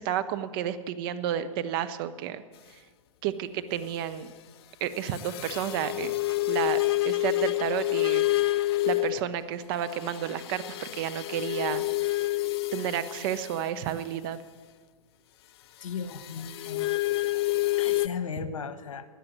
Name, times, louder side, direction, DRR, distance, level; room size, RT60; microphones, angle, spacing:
voice 1, 0.0-2.4 3.2-4.3 4.8-6.1 6.5-6.8 7.0-8.2 8.8-11.8 12.7-14.4, right 10 dB, 40° right, 11 dB, 0.9 m, -31 dB
sound 1, 5.1-9.3 9.9-13.6 16.1-18.1, left 18 dB, 45° left, 0.4 m, -28 dB
voice 2, 15.8-16.9 17.8-19.1, left 6 dB, 65° left, 14 dB, 1.3 m, -36 dB
13.5 x 9.6 x 9.6 m, 1.5 s
figure-of-eight pair, 110°, 18 cm